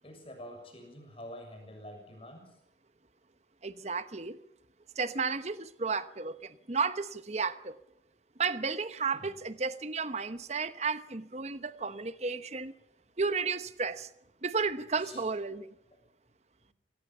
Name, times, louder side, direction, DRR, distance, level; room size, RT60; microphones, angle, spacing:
voice 1, 0.0-2.5 9.1-9.3 15.0-15.2, left 1 dB, 30° left, 5 dB, 6.8 m, -47 dB
voice 2, 3.6-4.4 5.0-7.8 8.4-12.7 13.2-14.1 14.4-15.7, right 4 dB, 40° right, 13 dB, 1.0 m, -33 dB
26.0 x 19.0 x 7.2 m, 0.78 s
head